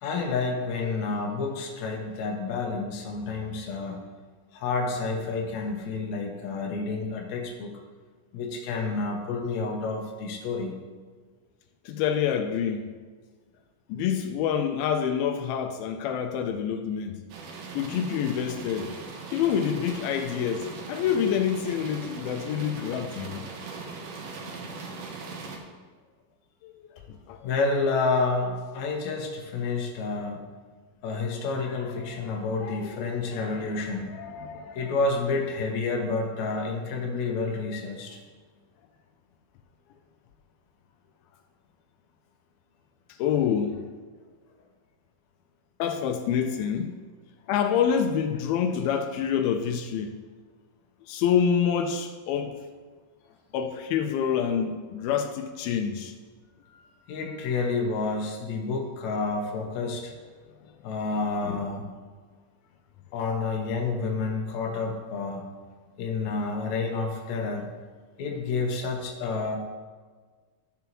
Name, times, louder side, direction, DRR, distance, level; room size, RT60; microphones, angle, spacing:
voice 1, 0.0-4.0 4.5-7.7 8.3-10.7 27.4-30.4 31.0-34.1 34.8-38.2 56.7-60.1 60.8-61.8 63.1-65.4 66.0-67.7 68.2-69.6, left 3 dB, 65° left, 1.9 m, -29 dB
voice 2, 11.9-12.9 13.9-17.1 17.8-19.0 19.3-23.5 26.6-26.7 27.1-27.5 32.0-34.9 43.2-43.8 45.8-46.9 47.5-50.2 51.1-52.6 53.5-56.1, left 8 dB, 85° left, 2.4 m, -27 dB
sound 1, 17.3-25.6, right 4 dB, 70° right, 2.2 m, -40 dB
13.0 x 7.0 x 3.0 m
omnidirectional pair, 4.5 m